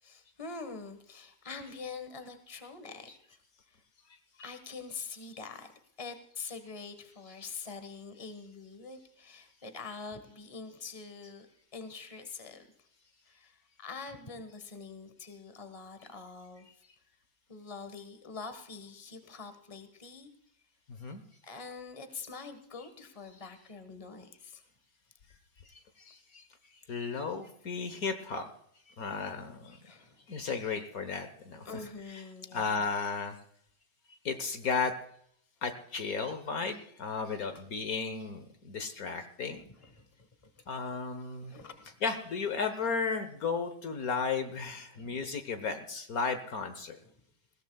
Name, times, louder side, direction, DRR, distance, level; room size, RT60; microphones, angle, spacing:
voice 1, 0.0-3.1 3.7-3.8 4.4-5.7 6.0-11.5 11.7-12.7 13.3-16.7 17.5-20.3 21.4-24.6 29.8-30.2 31.6-32.8 39.2-39.3 39.6-41.0 41.5-42.0 44.9-45.3, left 4 dB, 20° left, 8 dB, 1.4 m, -45 dB
voice 2, 20.9-21.2 21.5-21.6 26.0-26.4 26.9-28.5 29.0-29.8 30.3-33.4 34.2-34.9 35.6-39.6 40.7-41.5 42.0-47.0, left 5 dB, 60° left, 8 dB, 1.5 m, -34 dB
21.0 x 16.5 x 2.3 m, 0.67 s
omnidirectional pair, 1.8 m